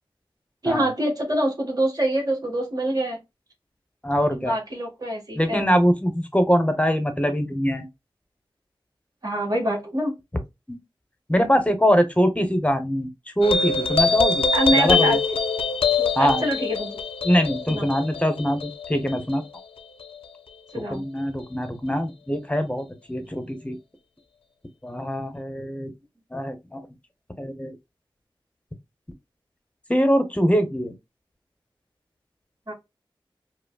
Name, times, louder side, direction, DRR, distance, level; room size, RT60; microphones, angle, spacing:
voice 1, 0.6-3.2 4.2-5.7 9.2-10.1 14.5-15.2 16.0-17.0 17.7-17.9 20.7-21.0 32.7-32.8, right 1 dB, 45° right, 1.3 m, -25 dB
voice 2, 4.0-4.5 5.4-7.9 10.7-10.8 11.3-13.1 13.4-14.5 14.7-15.2 16.2-16.4 17.2-19.4 20.9-23.8 24.8-25.9 26.3-26.8 27.4-27.7 29.9-30.9, equal, 15° left, 0.8 m, -23 dB
sound 1, 13.4-20.2, left 4 dB, 85° left, 0.4 m, -24 dB
5.0 x 2.0 x 2.3 m
wide cardioid pair, 50°, 9 cm